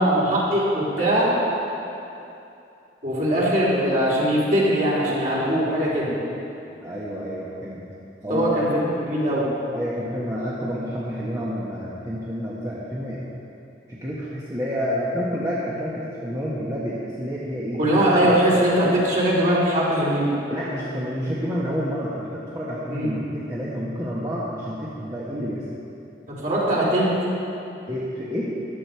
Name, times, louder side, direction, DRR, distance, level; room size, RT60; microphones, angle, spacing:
voice 1, 0.0-1.3 3.0-6.1 8.3-9.5 17.8-20.3 22.9-23.1 26.4-27.1, right 1 dB, 45° right, -6 dB, 3.7 m, -21 dB
voice 2, 6.8-7.8 8.2-8.6 9.7-13.2 13.9-17.8 18.2-18.3 20.5-25.6 27.9-28.5, equal, 20° right, -7 dB, 1.3 m, -29 dB
15.0 x 12.0 x 4.6 m, 2.8 s
head